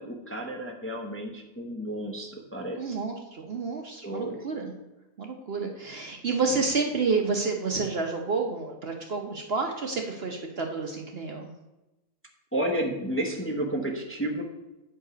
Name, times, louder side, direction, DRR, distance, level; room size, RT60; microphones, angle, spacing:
voice 1, 0.0-3.0 4.0-4.4 12.5-14.4, right 1 dB, 10° left, 0 dB, 0.8 m, -31 dB
voice 2, 2.7-4.7 5.2-11.5, right 4 dB, 50° right, 3 dB, 0.9 m, -29 dB
8.7 x 5.2 x 5.0 m, 0.99 s
omnidirectional pair, 1.5 m